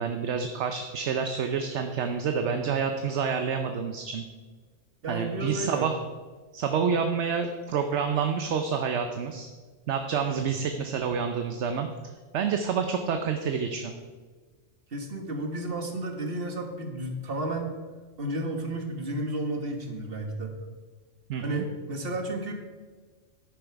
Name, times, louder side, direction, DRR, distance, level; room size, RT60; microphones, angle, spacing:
voice 1, 0.0-4.2 5.1-6.0 6.5-9.5 9.9-11.9 12.3-13.9 21.3-21.6, right 6 dB, 70° right, 6 dB, 1.0 m, -28 dB
voice 2, 5.0-5.9 10.3-10.6 14.9-17.8 18.2-20.6 21.4-22.5, right 1 dB, 50° right, 3 dB, 1.7 m, -32 dB
10.5 x 9.0 x 4.6 m, 1.4 s
omnidirectional pair, 1.3 m